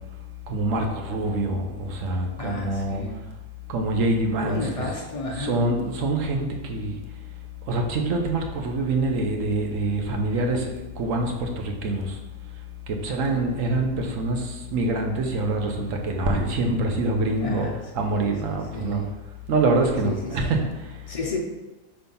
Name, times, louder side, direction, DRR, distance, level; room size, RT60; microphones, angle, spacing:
voice 1, 0.5-3.0 3.7-4.6 5.4-7.0 7.7-10.7 11.0-12.1 13.0-14.4 14.7-17.7 18.0-19.0 19.5-20.6, right 2 dB, 60° right, 3 dB, 1.1 m, -25 dB
voice 2, 2.4-3.3 4.4-5.6 13.0-13.4 17.4-19.1 20.0-20.5 21.1-21.4, left 2 dB, 50° left, -1 dB, 0.4 m, -33 dB
5.6 x 3.4 x 5.3 m, 1.1 s
omnidirectional pair, 1.7 m